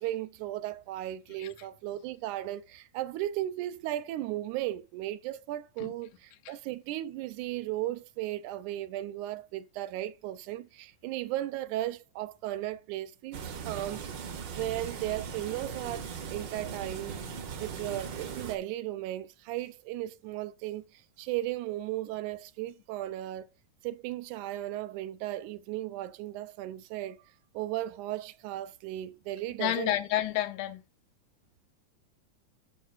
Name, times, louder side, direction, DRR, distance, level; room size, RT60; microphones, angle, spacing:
voice 1, 0.0-14.0 14.5-17.2 17.6-23.5 23.8-27.2 27.5-30.0, right 14 dB, 90° right, 2.1 m, -36 dB
sound 1, 13.3-18.5, right 6 dB, 65° right, 1.1 m, -39 dB
voice 2, 29.6-30.8, left 13 dB, 90° left, 2.3 m, -30 dB
12.5 x 6.4 x 2.5 m
omnidirectional pair, 3.5 m